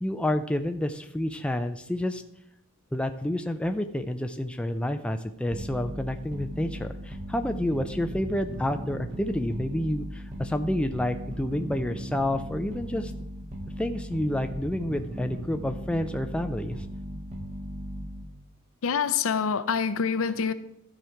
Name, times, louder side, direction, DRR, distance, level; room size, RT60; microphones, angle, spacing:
voice 1, 0.0-2.2 2.9-13.1 13.8-16.9, left 1 dB, 5° left, 0.4 m, -29 dB
sound 1, 5.5-18.4, equal, 30° right, 1.1 m, -37 dB
voice 2, 18.8-20.5, left 6 dB, 65° left, 0.5 m, -26 dB
12.5 x 5.1 x 4.5 m
head